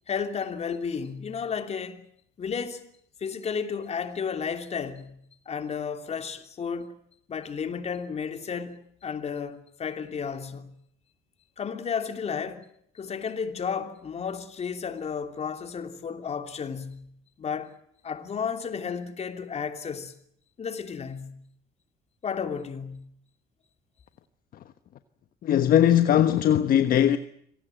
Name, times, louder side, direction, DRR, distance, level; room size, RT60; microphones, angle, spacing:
voice 1, 0.1-2.1 2.4-2.9 3.2-6.9 7.3-8.8 9.0-10.8 11.6-12.6 12.9-17.1 17.4-17.7 18.0-20.2 20.6-21.5 22.2-23.1, left 6 dB, 40° left, 3.1 m, -33 dB
voice 2, 25.4-27.2, left 10 dB, 60° left, 1.3 m, -20 dB
26.5 x 18.5 x 9.0 m
cardioid pair, 110°, 17 cm